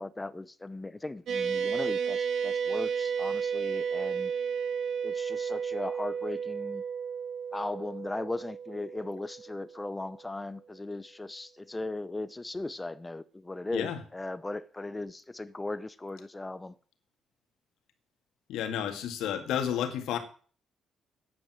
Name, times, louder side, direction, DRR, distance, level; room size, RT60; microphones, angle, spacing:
voice 1, 0.0-4.3 5.0-6.8 7.5-16.7, left 2 dB, 15° left, 0.7 m, -38 dB
sound 1, 1.3-10.0, right 7 dB, 65° right, 2.4 m, -32 dB
voice 2, 18.5-20.2, left 9 dB, 85° left, 1.9 m, -31 dB
9.7 x 7.9 x 7.6 m
cardioid pair, 90°, 0 cm